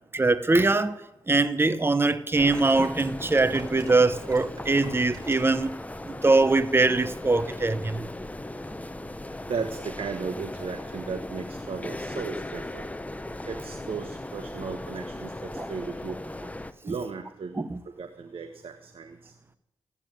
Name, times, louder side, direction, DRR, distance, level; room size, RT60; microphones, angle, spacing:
voice 1, 0.1-1.0 1.3-5.7 6.0-8.0 15.6-15.7 17.6-17.8, right 3 dB, 25° right, 1.0 m, -22 dB
sound 1, 2.3-16.7, left 1 dB, 15° left, 1.0 m, -38 dB
sound 2, 2.5-5.8 6.1-6.6 6.9-7.0, right 1 dB, 40° right, 7.4 m, -46 dB
voice 2, 9.5-12.8 13.4-16.2 16.8-19.3, right 5 dB, 70° right, 1.4 m, -36 dB
15.0 x 9.8 x 9.2 m
cardioid pair, 55°, 10 cm